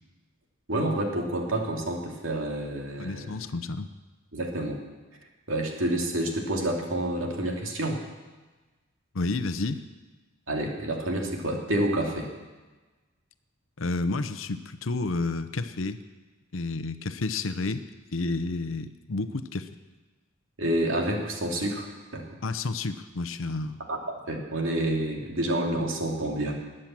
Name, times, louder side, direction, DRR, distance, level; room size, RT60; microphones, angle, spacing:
voice 1, 0.7-3.3 4.3-4.8 5.5-8.0 10.5-12.3 20.6-22.2 23.9-26.5, right 1 dB, 65° right, 1 dB, 2.7 m, -28 dB
voice 2, 3.0-3.9 9.1-9.8 13.8-16.0 16.5-17.8 18.1-19.7 22.4-23.8, left 3 dB, 70° left, 10 dB, 0.8 m, -30 dB
20.5 x 7.6 x 7.5 m, 1.3 s
head